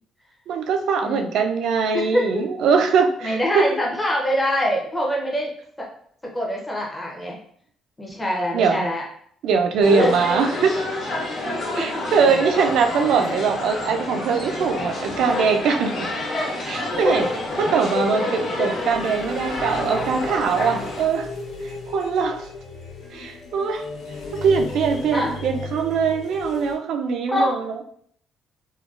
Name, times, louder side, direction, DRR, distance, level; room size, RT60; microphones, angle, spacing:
voice 1, 0.5-3.7 8.5-8.9 9.4-10.7 11.7-16.1 16.7-17.3 17.6-21.3 21.9-22.4 23.1-23.8 24.4-27.8, right 5 dB, 65° right, 5 dB, 0.4 m, -22 dB
voice 2, 1.9-2.5 3.2-5.5 5.8-5.9 6.2-7.4 8.0-9.0 10.0-10.1 11.8-12.2 16.3-16.5 25.1-25.3 27.3-27.6, equal, 10° left, -2 dB, 0.7 m, -24 dB
sound 1, 9.8-21.0, left 2 dB, 50° left, 1.2 m, -28 dB
sound 2, 16.9-26.7, left 2 dB, 80° left, 1.3 m, -36 dB
3.7 x 2.2 x 2.4 m, 0.63 s
cardioid pair, 150°, 0 cm